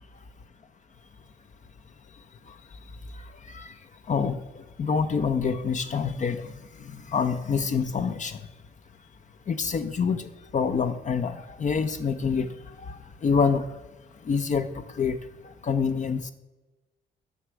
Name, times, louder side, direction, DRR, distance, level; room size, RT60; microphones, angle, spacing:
voice 1, 4.8-6.4 6.8-8.4 9.5-12.5 12.8-13.6 14.3-14.7 15.0-15.2 15.6-16.3, left 5 dB, 40° left, 8 dB, 0.6 m, -26 dB
8.1 x 5.6 x 6.1 m, 1.1 s
cardioid pair, 90°, 20 cm